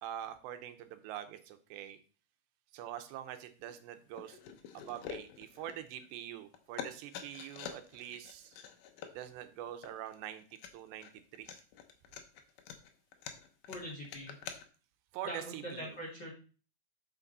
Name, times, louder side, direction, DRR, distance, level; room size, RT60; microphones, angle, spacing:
voice 1, 0.0-2.0 2.7-8.6 9.1-11.6 15.1-16.0, right 11 dB, 85° right, 9 dB, 3.0 m, -45 dB
sound 1, 3.6-3.8 4.2-6.3 6.5-14.6, left 8 dB, 75° left, 1.9 m, -47 dB
voice 2, 13.7-14.4 15.2-16.3, equal, 35° left, -3 dB, 2.1 m, -43 dB
8.5 x 6.3 x 4.0 m, 0.37 s
omnidirectional pair, 4.9 m